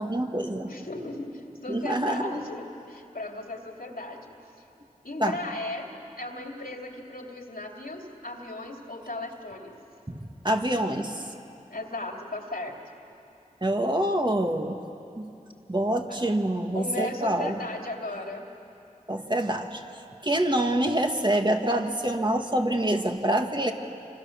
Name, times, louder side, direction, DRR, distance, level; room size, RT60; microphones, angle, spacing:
voice 1, 0.0-0.7 1.7-2.4 5.2-5.4 10.1-10.2 10.4-11.3 13.6-14.8 15.2-15.3 15.7-17.6 19.1-19.8 20.2-23.7, right 1 dB, 30° right, 3 dB, 1.8 m, -26 dB
voice 2, 0.7-4.3 5.0-5.9 6.2-9.7 11.7-12.7 16.1-16.2 16.7-18.5, left 2 dB, 85° left, 1 dB, 2.6 m, -36 dB
27.5 x 26.0 x 7.2 m, 2.7 s
wide cardioid pair, 45°, 15 cm